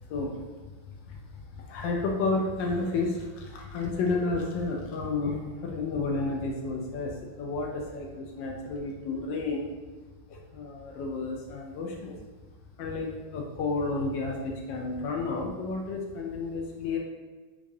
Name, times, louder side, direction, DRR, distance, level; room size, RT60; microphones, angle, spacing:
voice 1, 0.1-0.4 0.9-9.7 10.3-12.1 12.8-17.0, left 3 dB, 75° left, 0 dB, 1.2 m, -31 dB
4.7 x 2.4 x 2.6 m, 1.3 s
omnidirectional pair, 2.2 m